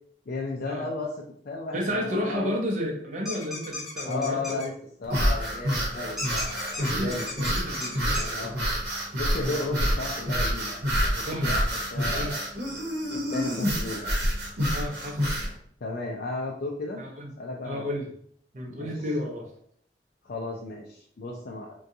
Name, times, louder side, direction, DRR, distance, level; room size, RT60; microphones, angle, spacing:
voice 1, 0.3-1.1 1.4-2.6 4.0-4.7 5.0-7.3 8.3-8.6 9.2-10.8 11.2-11.6 11.9-12.5 13.1-14.1 15.8-17.0 17.4-17.9 18.7-18.9 20.2-21.7, left 3 dB, 55° left, -2 dB, 0.4 m, -34 dB
voice 2, 1.7-4.7 6.8-8.7 9.4-9.6 11.3-11.5 12.1-12.4 14.7-15.3 17.0-17.3 17.6-18.1 18.5-19.5, equal, 45° right, 0 dB, 0.6 m, -32 dB
sound 1, 3.2-4.7 6.2-8.3, left 2 dB, ahead, 0.6 m, -36 dB
sound 2, 5.0-15.5, equal, 70° right, 0.9 m, -27 dB
3.7 x 2.3 x 2.6 m, 0.64 s
head